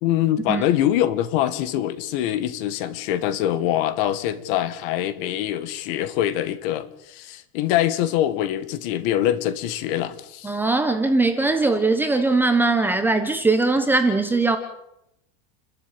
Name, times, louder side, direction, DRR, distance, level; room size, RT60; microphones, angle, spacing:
voice 1, 0.0-10.6, left 12 dB, 45° left, 2.0 m, -24 dB
voice 2, 10.4-14.6, right 3 dB, 5° right, 1.1 m, -20 dB
29.5 x 13.0 x 9.1 m
supercardioid pair, 180°, 39 cm